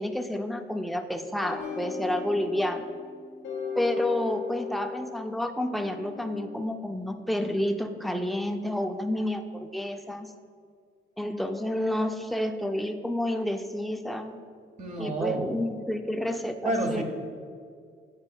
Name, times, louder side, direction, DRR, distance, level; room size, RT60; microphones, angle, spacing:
voice 1, 0.0-2.9 3.8-10.3 11.2-14.4 15.0-17.0, left 1 dB, ahead, 5 dB, 0.4 m, -30 dB
sound 1, 1.4-6.5, left 5 dB, 65° left, 1.0 m, -37 dB
voice 2, 14.8-15.6 16.6-17.0, right 2 dB, 40° right, 2 dB, 0.9 m, -29 dB
9.6 x 4.3 x 2.3 m, 2.1 s
cardioid pair, 90°, 20 cm